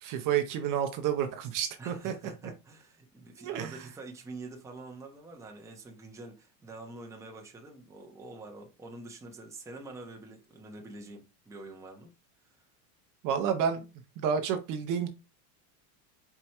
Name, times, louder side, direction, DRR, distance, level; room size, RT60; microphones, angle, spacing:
voice 1, 0.0-2.1 3.4-3.8 13.2-13.8 14.2-15.1, right 8 dB, 40° right, 0.7 m, -30 dB
voice 2, 1.8-12.1 12.4-12.6, right 2 dB, 5° right, 0.7 m, -46 dB
4.6 x 2.2 x 4.2 m
supercardioid pair, 130°, 49 cm